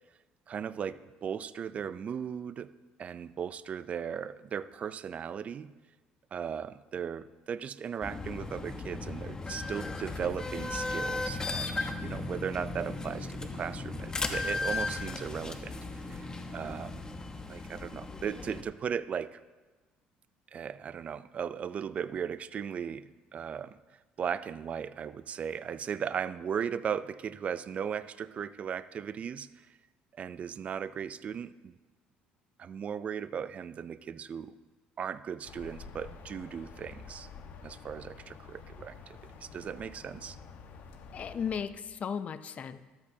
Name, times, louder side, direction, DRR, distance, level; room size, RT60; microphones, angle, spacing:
voice 1, 0.5-2.7 3.0-5.7 6.3-15.7 16.0-16.3 16.5-17.0 17.5-19.4 20.5-23.8 24.2-29.7 30.1-31.8 32.6-34.6 35.0-37.3 37.6-40.4, right 7 dB, 40° right, 15 dB, 0.4 m, -37 dB
sound 1, 8.0-18.6, left 3 dB, 20° left, 1.0 m, -36 dB
sound 2, 35.4-41.7, left 5 dB, 60° left, 1.2 m, -49 dB
voice 2, 41.1-42.8, left 7 dB, 45° left, 13 dB, 0.5 m, -35 dB
13.5 x 12.5 x 2.8 m, 1.2 s
cardioid pair, 105°, 3 cm